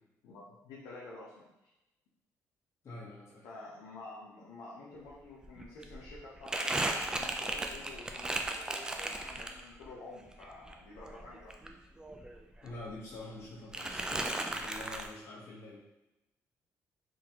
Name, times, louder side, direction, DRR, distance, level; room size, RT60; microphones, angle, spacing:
voice 1, 0.2-1.4 3.4-11.5 14.1-14.4, left 2 dB, 90° left, -5 dB, 0.7 m, -49 dB
voice 2, 2.8-3.5 12.6-14.0 14.5-15.8, left 2 dB, 50° left, -6 dB, 1.4 m, -46 dB
Crumpling crinkling, 5.1-5.2 5.4-9.9 10.3-12.4 12.7-13.4 13.7-15.1, right 2 dB, 10° right, 0.3 m, -36 dB
3.9 x 2.6 x 2.8 m, 0.95 s
cardioid pair, 100°, 6 cm